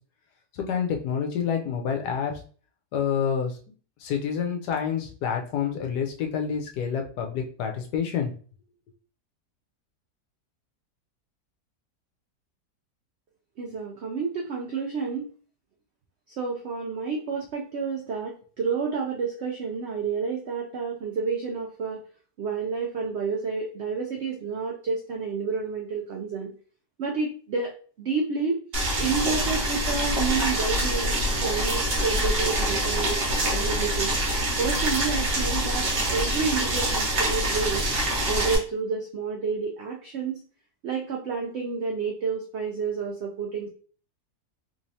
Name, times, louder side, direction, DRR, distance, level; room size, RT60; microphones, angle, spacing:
voice 1, 0.5-2.3 2.9-3.6 4.0-8.3, left 7 dB, 80° left, 3 dB, 1.3 m, -28 dB
voice 2, 13.6-15.3 16.3-22.0 22.4-26.5 27.0-27.7 28.0-28.6 29.0-34.1 34.6-37.9 38.2-40.4 40.8-43.7, right 5 dB, 90° right, 0 dB, 0.5 m, -30 dB
Boiling, 28.7-38.6, right 1 dB, 45° right, 1.3 m, -25 dB
3.4 x 3.1 x 2.7 m, 0.41 s
omnidirectional pair, 1.8 m